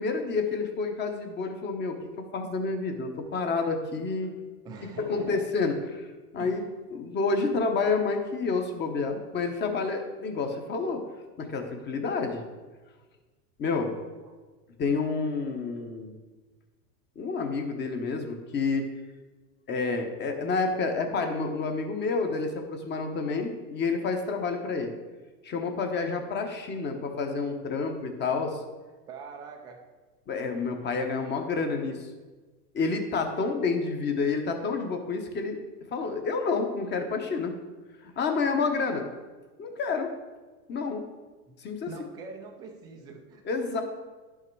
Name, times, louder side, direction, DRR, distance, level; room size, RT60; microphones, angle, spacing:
voice 1, 0.0-4.3 5.1-6.1 6.3-6.6 6.9-11.0 11.4-12.4 13.6-13.9 14.8-16.1 17.2-18.9 19.7-24.9 25.4-28.6 30.3-32.1 32.7-35.6 35.9-37.5 38.0-39.1 39.6-40.1 40.7-41.0 41.6-41.9 43.4-43.8, left 4 dB, 20° left, 5 dB, 0.9 m, -29 dB
voice 2, 4.6-5.5 6.4-6.6 14.2-14.4 29.1-29.8 41.5-41.6 41.9-43.4 43.7-43.8, right 4 dB, 10° right, 2 dB, 0.3 m, -43 dB
10.5 x 5.8 x 4.6 m, 1.3 s
hypercardioid pair, 130°, 49 cm